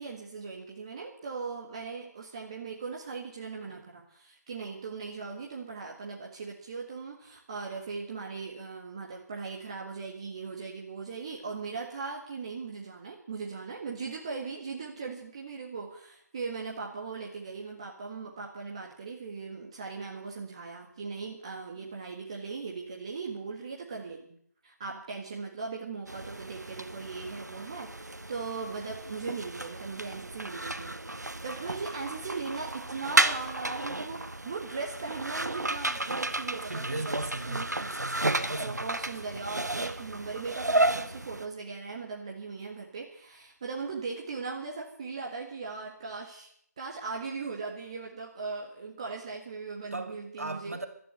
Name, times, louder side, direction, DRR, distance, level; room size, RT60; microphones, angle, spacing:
voice 1, 0.0-24.3 24.6-37.9 38.6-46.5 46.8-50.8, right 4 dB, 20° right, -1 dB, 1.7 m, -39 dB
sound 1, 26.1-41.5, right 2 dB, 75° right, 1.5 m, -32 dB
voice 2, 36.7-39.0 49.9-50.9, right 2 dB, 55° right, 6 dB, 3.0 m, -37 dB
14.0 x 12.5 x 7.9 m, 0.65 s
figure-of-eight pair, 165°, 9 cm